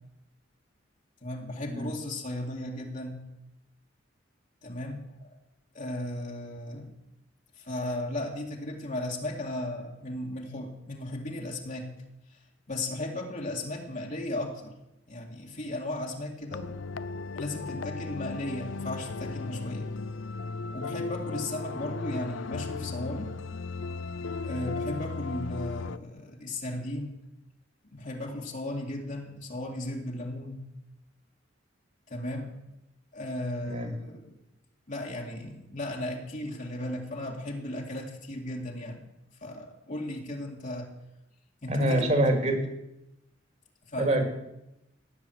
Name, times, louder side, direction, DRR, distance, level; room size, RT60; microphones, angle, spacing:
voice 1, 1.2-3.2 4.6-5.4 5.7-6.9 7.6-11.9 12.3-12.4 12.7-14.8 15.1-16.8 17.3-19.9 20.7-23.4 24.4-27.2 27.8-30.6 32.1-32.5 33.1-34.4 34.9-39.1 39.4-40.9 41.6-42.1 43.9-44.2, left 1 dB, 40° left, 0 dB, 2.3 m, -36 dB
sound 1, 16.5-26.0, left 4 dB, 70° left, 0.6 m, -36 dB
voice 2, 33.6-33.9 41.7-42.7 44.0-44.3, right 1 dB, 35° right, 4 dB, 3.2 m, -25 dB
16.0 x 10.0 x 8.0 m, 0.89 s
head